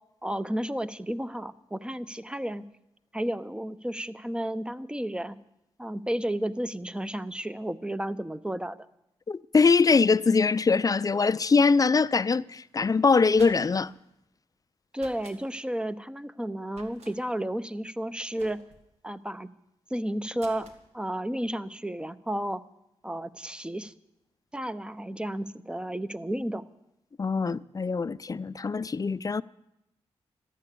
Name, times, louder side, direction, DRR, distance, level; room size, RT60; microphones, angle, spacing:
voice 1, 0.2-2.6 3.1-5.4 5.8-8.8 14.9-18.6 19.0-19.5 19.9-20.7 20.9-22.6 23.0-23.9 24.5-26.6, right 1 dB, 10° right, 0.8 m, -32 dB
voice 2, 9.3-13.9 27.2-29.4, left 4 dB, 35° left, 0.5 m, -23 dB
sound 1, 13.1-13.9 14.9-15.4 16.7-17.2 18.4-18.9 20.4-20.8, right 3 dB, 80° right, 1.9 m, -50 dB
14.0 x 11.5 x 8.4 m
cardioid pair, 60°, 11 cm